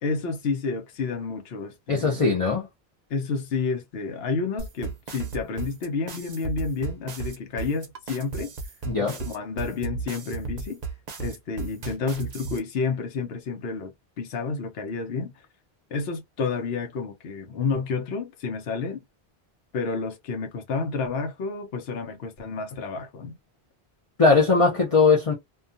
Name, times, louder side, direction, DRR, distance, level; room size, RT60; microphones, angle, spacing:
voice 1, 0.0-2.3 3.1-8.5 9.0-10.8 11.2-15.4 15.9-19.0 19.7-23.4, left 4 dB, 70° left, 0.9 m, -30 dB
voice 2, 1.9-2.7 8.8-9.2 24.2-25.3, left 4 dB, 35° left, 0.7 m, -20 dB
sound 1, 4.6-12.6, right 5 dB, 45° right, 0.6 m, -34 dB
2.3 x 2.3 x 2.5 m
omnidirectional pair, 1.1 m